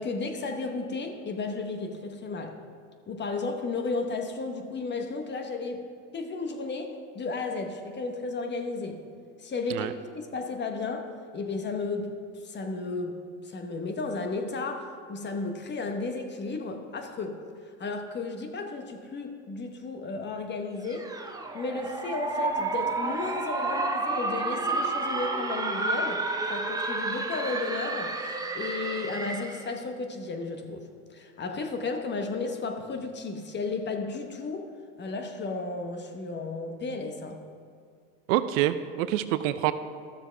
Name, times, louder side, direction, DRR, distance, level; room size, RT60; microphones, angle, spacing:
voice 1, 0.0-2.6 3.1-5.9 6.1-9.0 9.4-17.4 17.8-21.1 21.5-34.7 35.0-37.4, left 3 dB, 25° left, 5 dB, 1.0 m, -34 dB
sound 1, 20.8-29.7, right 3 dB, 10° right, 0.7 m, -30 dB
voice 2, 38.3-39.7, right 13 dB, 65° right, 12 dB, 0.6 m, -26 dB
13.0 x 6.9 x 3.4 m, 2.2 s
hypercardioid pair, 95°, 42 cm